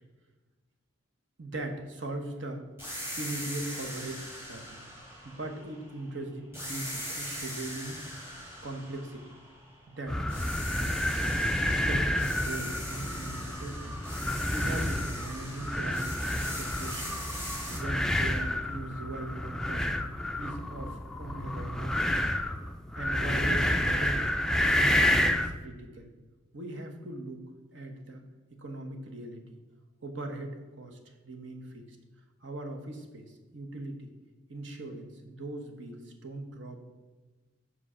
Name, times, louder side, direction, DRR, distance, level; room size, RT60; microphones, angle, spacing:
voice 1, 1.4-2.6 3.2-4.8 5.2-8.0 8.6-9.2 9.9-10.2 10.7-11.0 11.6-14.0 14.5-17.2 17.7-20.0 20.4-22.3 23.0-24.2 24.6-26.1 26.5-27.4 27.7-28.2 28.5-29.6 30.0-31.0 31.2-32.0 32.4-34.1 34.5-36.8, right 2 dB, 70° right, 4 dB, 1.1 m, -40 dB
sound 1, 2.8-6.1 6.5-9.9 10.3-17.8, equal, 15° right, 1.7 m, -41 dB
sound 2, 10.1-25.6, left 1 dB, 5° left, 0.3 m, -29 dB
5.6 x 5.1 x 5.6 m, 1.3 s
head